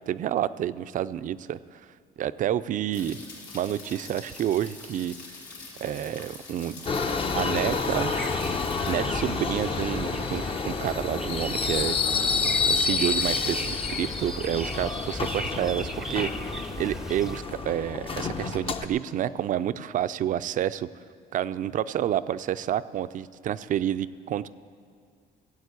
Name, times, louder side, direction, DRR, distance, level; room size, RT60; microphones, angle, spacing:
voice 1, 0.1-1.8 2.2-3.2 3.5-5.1 5.8-6.8 7.3-8.1 8.9-12.0 12.7-16.3 16.8-20.9 21.3-24.5, right 11 dB, 50° right, 14 dB, 0.4 m, -29 dB
sound 1, 2.9-8.9, left 3 dB, 80° left, 3.9 m, -45 dB
Subway metro underground, 6.9-18.9, left 4 dB, 35° left, 0.8 m, -29 dB
sound 2, 7.0-17.4, right 1 dB, 5° right, 0.6 m, -38 dB
16.5 x 8.0 x 8.2 m, 2.2 s
cardioid pair, 110°, 17 cm